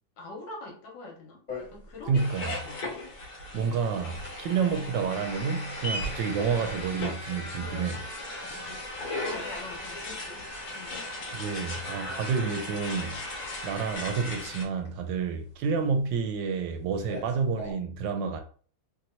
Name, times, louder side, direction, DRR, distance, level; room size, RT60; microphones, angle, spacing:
voice 1, 0.2-3.0 3.5-3.8 6.7-6.8 8.4-8.8 9.2-10.5 10.7-11.1, left 2 dB, 75° left, 1.5 m, -45 dB
sound 1, 1.5-17.7, left 2 dB, 25° left, 1.1 m, -45 dB
sound 2, 2.1-14.6, left 1 dB, 60° left, 1.3 m, -37 dB
voice 2, 2.1-2.6 3.5-8.0 11.3-13.3 13.6-18.4, right 5 dB, 75° right, 1.2 m, -29 dB
3.2 x 2.8 x 2.6 m
omnidirectional pair, 2.1 m